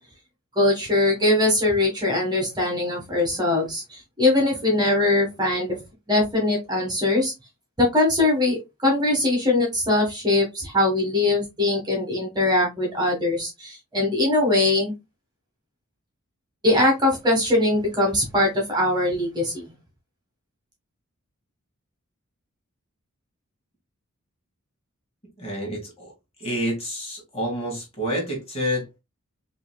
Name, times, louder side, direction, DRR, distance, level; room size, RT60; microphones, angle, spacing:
voice 1, 0.5-5.7 6.1-7.3 7.8-14.9 16.6-19.6, left 2 dB, 20° right, 1.4 m, -21 dB
voice 2, 25.4-26.1 26.4-29.0, equal, 30° left, 1.9 m, -28 dB
5.6 x 2.9 x 2.2 m
head